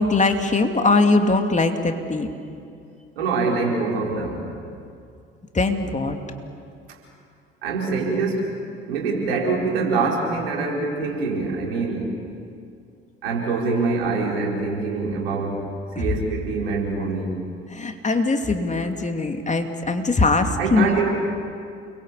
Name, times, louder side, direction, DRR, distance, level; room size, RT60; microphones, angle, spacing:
voice 1, 0.0-2.3 5.5-6.2 16.0-16.1 17.7-21.1, left 3 dB, 25° left, 5 dB, 2.9 m, -21 dB
voice 2, 3.1-4.5 6.9-7.0 7.6-8.5 8.9-12.2 13.2-15.7 16.0-17.4 20.6-21.1, right 4 dB, 80° right, -1 dB, 4.7 m, -24 dB
29.5 x 22.5 x 8.5 m, 2.4 s
figure-of-eight pair, 55°, 29 cm